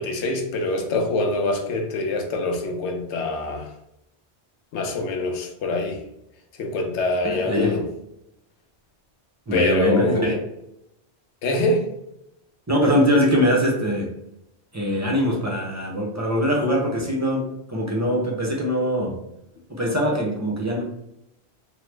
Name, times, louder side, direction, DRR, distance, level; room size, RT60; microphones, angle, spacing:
voice 1, 0.0-3.7 4.7-6.0 6.6-7.9 9.5-10.4 11.4-11.8, left 2 dB, 90° left, 0.9 m, -24 dB
voice 2, 7.2-7.9 9.5-10.3 12.7-14.2 14.7-19.2 19.7-20.8, equal, 30° right, 0.3 m, -22 dB
3.0 x 2.0 x 3.1 m
omnidirectional pair, 1.1 m